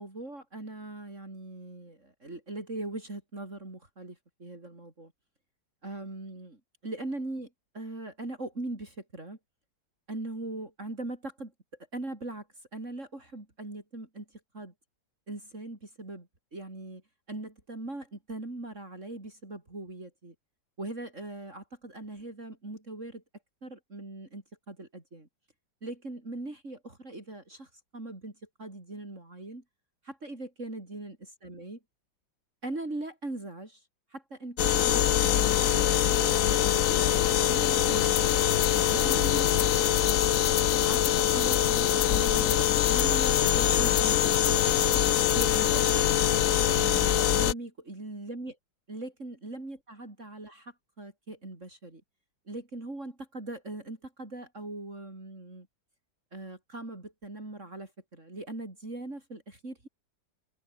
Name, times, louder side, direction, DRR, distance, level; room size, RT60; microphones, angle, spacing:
voice 1, 0.0-5.1 5.8-9.4 10.1-11.5 11.9-12.5 12.7-14.7 15.3-17.0 17.3-20.3 20.8-23.2 23.6-25.3 25.8-29.6 30.0-31.8 32.6-33.8 34.1-38.4 38.9-39.5 40.9-44.7 45.3-46.2 46.6-48.5 48.9-52.0 52.5-55.7 56.3-59.9, right 2 dB, 35° right, 5.1 m, -40 dB
sound 1, 34.6-47.5, left 11 dB, 60° left, 0.9 m, -24 dB
sound 2, 38.2-45.9, left 13 dB, 85° left, 1.6 m, -37 dB
omnidirectional pair, 2.1 m